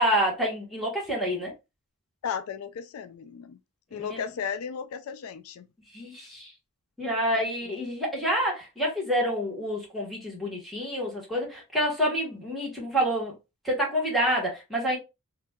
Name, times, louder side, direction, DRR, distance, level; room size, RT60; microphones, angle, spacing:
voice 1, 0.0-1.5 3.9-4.2 5.9-6.5 7.0-13.3 13.6-15.0, equal, ahead, 1.5 m, -28 dB
voice 2, 2.2-3.6 3.9-5.7 7.3-7.8, left 7 dB, 65° left, 0.3 m, -35 dB
2.9 x 2.6 x 3.6 m
head